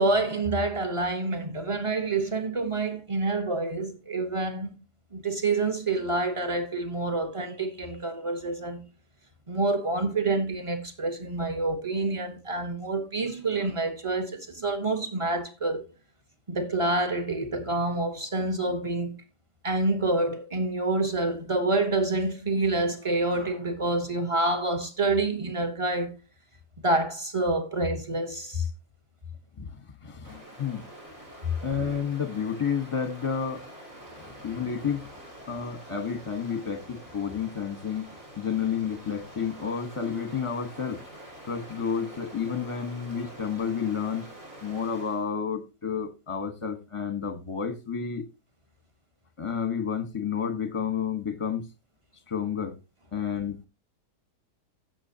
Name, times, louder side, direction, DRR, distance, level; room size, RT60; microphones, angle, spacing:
voice 1, 0.0-4.7 5.1-8.8 9.5-15.9 16.5-19.1 19.6-26.1 26.8-28.6, right 2 dB, 20° right, 1.3 m, -27 dB
voice 2, 29.6-30.8 31.6-33.7 34.2-35.1 35.5-38.1 38.4-41.0 41.4-44.2 44.6-48.2 49.4-51.6 52.3-52.8 53.1-53.6, left 7 dB, 20° left, 1.1 m, -30 dB
Stream, 30.2-45.3, right 1 dB, 50° right, 4.1 m, -46 dB
16.5 x 6.1 x 2.8 m
omnidirectional pair, 1.8 m